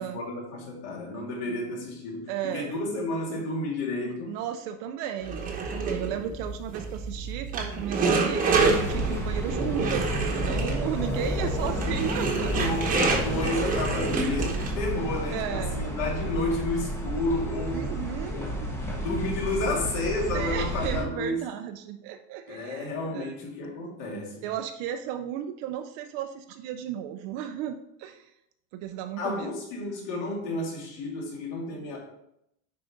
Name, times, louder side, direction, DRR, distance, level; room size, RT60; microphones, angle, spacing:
voice 1, 0.0-4.3 12.6-17.9 18.3-18.5 19.0-21.4 22.5-24.5 29.2-32.0, left 2 dB, 55° left, -2 dB, 2.9 m, -31 dB
voice 2, 2.3-2.8 4.0-12.5 15.3-15.9 17.7-18.7 20.3-23.4 24.4-28.3 28.7-29.5, right 10 dB, 40° right, 7 dB, 0.4 m, -34 dB
sound 1, 5.2-14.9, right 4 dB, 20° right, 1.0 m, -28 dB
sound 2, 8.5-21.0, equal, 5° left, 0.7 m, -31 dB
10.5 x 4.7 x 3.8 m, 0.79 s
cardioid pair, 175°, 44 cm